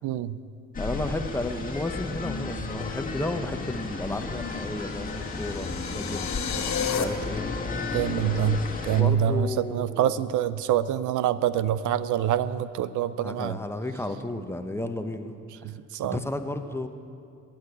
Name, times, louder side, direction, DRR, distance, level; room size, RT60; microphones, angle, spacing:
voice 1, 0.0-0.4 7.9-13.6 15.6-16.2, right 9 dB, 80° right, 15 dB, 0.6 m, -26 dB
sound 1, 0.7-9.0, left 3 dB, 30° left, 1.7 m, -33 dB
voice 2, 0.8-6.3 6.9-7.5 8.9-10.3 13.2-15.3 16.1-16.9, left 2 dB, 10° left, 7 dB, 1.0 m, -33 dB
sound 2, 4.5-7.0, left 8 dB, 65° left, 1.2 m, -33 dB
13.0 x 8.9 x 9.8 m, 2.6 s
cardioid pair, 90°, 30 cm